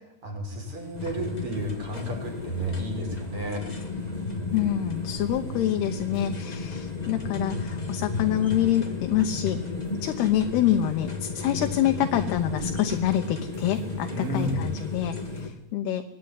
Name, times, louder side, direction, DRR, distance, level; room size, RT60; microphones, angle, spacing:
voice 1, 0.2-3.6 14.1-14.6, equal, 30° right, 3 dB, 6.5 m, -32 dB
sound 1, 0.6-15.5, right 1 dB, 80° right, 9.4 m, -49 dB
sound 2, 0.9-15.5, left 3 dB, 35° left, 0.6 m, -33 dB
voice 2, 4.5-9.6 10.0-16.0, left 11 dB, 75° left, 6 dB, 2.9 m, -26 dB
24.0 x 19.0 x 9.8 m, 0.86 s
omnidirectional pair, 4.9 m